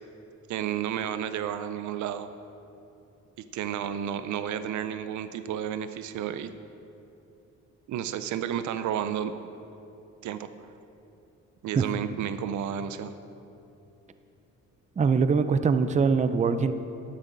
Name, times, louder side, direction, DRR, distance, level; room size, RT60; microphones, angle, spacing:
voice 1, 0.5-2.3 3.5-6.5 7.9-9.3 10.2-10.7 11.6-13.1, right 9 dB, 75° right, 11 dB, 0.6 m, -31 dB
voice 2, 15.0-16.7, right 5 dB, 25° right, 11 dB, 0.5 m, -23 dB
12.0 x 10.5 x 3.9 m, 2.8 s
cardioid pair, 90°, 30 cm